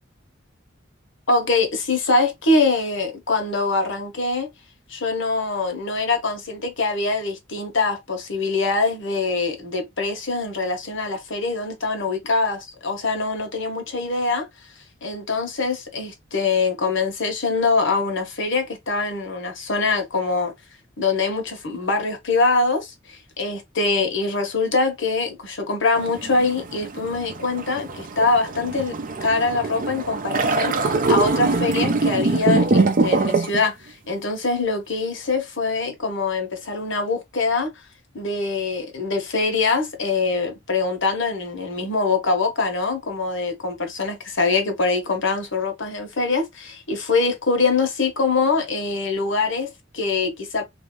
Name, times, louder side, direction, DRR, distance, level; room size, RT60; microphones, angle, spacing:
voice 1, 1.3-4.5 4.9-14.5 15.0-20.5 21.0-37.7 38.1-50.6, left 3 dB, 65° left, 1.2 m, -23 dB
sound 1, 26.0-33.6, right 3 dB, 45° right, 0.6 m, -23 dB
3.1 x 2.8 x 3.7 m
head